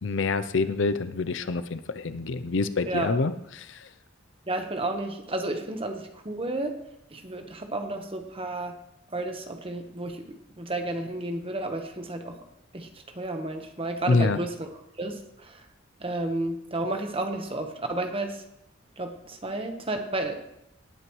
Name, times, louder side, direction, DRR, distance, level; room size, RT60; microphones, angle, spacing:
voice 1, 0.0-3.9 14.1-14.4, left 3 dB, 65° left, 12 dB, 0.6 m, -26 dB
voice 2, 2.9-3.2 4.5-6.8 7.1-8.8 9.1-10.2 10.6-12.4 12.7-12.9 13.1-14.7 15.0-15.6 16.0-18.4 19.0-20.4, right 2 dB, 25° right, 5 dB, 1.2 m, -32 dB
18.5 x 9.0 x 3.1 m, 0.83 s
head